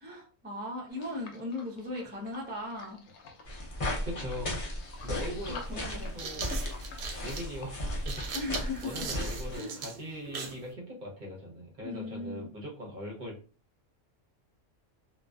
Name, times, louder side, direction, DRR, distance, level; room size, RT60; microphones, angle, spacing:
voice 1, 0.0-3.0 5.5-6.1 8.3-9.1 9.5-9.8 11.8-12.5, left 2 dB, 15° right, -3 dB, 0.3 m, -38 dB
sound 1, 0.9-7.7, left 4 dB, 85° left, 1.0 m, -50 dB
sound 2, 3.4-9.6, left 1 dB, 40° left, 0.5 m, -36 dB
voice 2, 4.0-4.6 5.0-6.5 7.2-8.2 8.8-13.4, equal, 45° right, -2 dB, 0.7 m, -40 dB
sound 3, 4.8-4.9 5.9-10.6, right 5 dB, 85° right, 1.0 m, -39 dB
2.5 x 2.2 x 2.2 m, 0.37 s
omnidirectional pair, 1.3 m